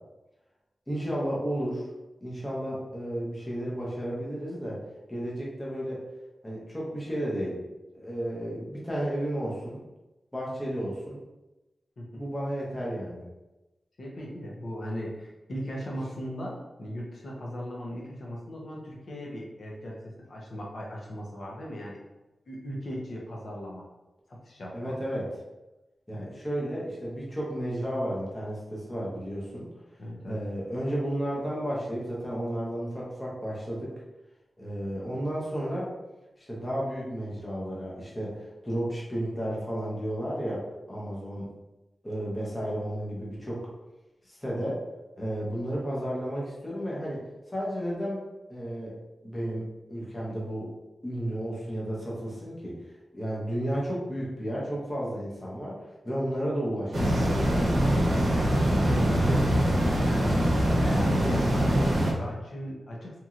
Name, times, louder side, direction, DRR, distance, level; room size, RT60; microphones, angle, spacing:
voice 1, 0.9-1.8 2.2-4.8 5.1-6.0 6.4-7.6 7.9-9.8 10.3-11.2 12.1-13.2 24.7-25.3 26.1-29.7 30.2-33.9 34.6-35.9 36.5-40.6 40.9-41.5 42.0-43.6 44.3-44.8 45.2-47.2 47.5-48.2 48.5-48.9 49.2-50.7 51.0-52.7 53.1-55.8 56.0-57.8, equal, 10° left, -6 dB, 0.7 m, -32 dB
voice 2, 14.0-22.0 22.5-23.9 24.3-24.9 26.1-26.3 30.0-30.4 58.8-59.5 59.9-63.2, equal, 55° left, -3 dB, 0.7 m, -37 dB
sound 1, 56.9-62.1, equal, 70° right, 0.7 m, -23 dB
2.9 x 2.7 x 2.4 m, 1.0 s
wide cardioid pair, 170°, 0 cm